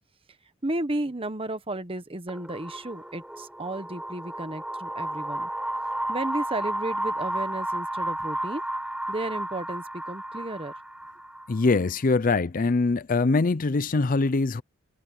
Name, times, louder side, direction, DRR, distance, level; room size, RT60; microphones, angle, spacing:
voice 1, 0.6-5.5 6.1-8.6 9.1-10.7, right 1 dB, 25° right, 1.2 m, -33 dB
sound 1, 2.3-11.8, right 1 dB, 5° right, 6.0 m, -32 dB
voice 2, 11.5-14.6, left 3 dB, 40° left, 0.5 m, -23 dB
head